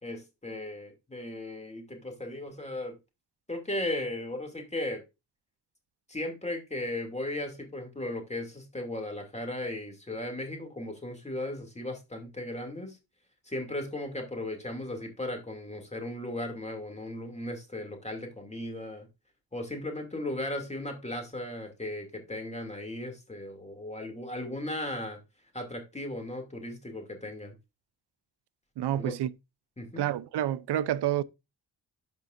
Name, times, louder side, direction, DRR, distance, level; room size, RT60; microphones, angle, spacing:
voice 1, 0.0-3.0 3.5-5.0 6.1-13.0 13.5-19.1 19.5-25.2 25.5-27.6 28.9-29.1 29.8-30.0, left 1 dB, 15° left, 2.5 m, -36 dB
voice 2, 28.8-29.3 30.0-31.2, right 12 dB, 80° right, 0.6 m, -28 dB
12.5 x 5.2 x 2.5 m
cardioid pair, 90°, 40 cm